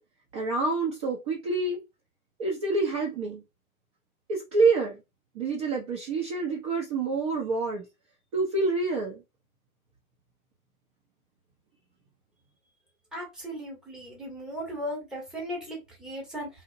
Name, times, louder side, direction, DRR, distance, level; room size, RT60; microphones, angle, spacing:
voice 1, 0.3-1.8 2.4-3.4 4.3-5.0 5.3-7.9 8.3-9.2, right 3 dB, 25° right, -1 dB, 0.5 m, -27 dB
voice 2, 13.1-16.5, equal, ahead, -2 dB, 0.8 m, -37 dB
2.9 x 2.1 x 2.5 m, 0.24 s
hypercardioid pair, 120°, 42 cm